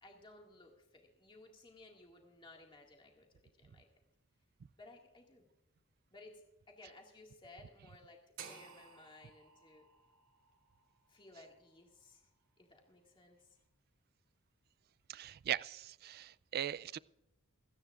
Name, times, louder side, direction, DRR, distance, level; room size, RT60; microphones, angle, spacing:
voice 1, 0.0-3.9 4.8-5.5 6.1-9.9 11.1-12.3 12.6-13.6, left 2 dB, 25° left, 1 dB, 2.0 m, -59 dB
sound 1, 8.4-12.5, right 6 dB, 65° right, 2.4 m, -56 dB
voice 2, 15.1-17.0, right 10 dB, 45° right, 19 dB, 0.3 m, -39 dB
28.5 x 9.9 x 2.4 m, 0.90 s
head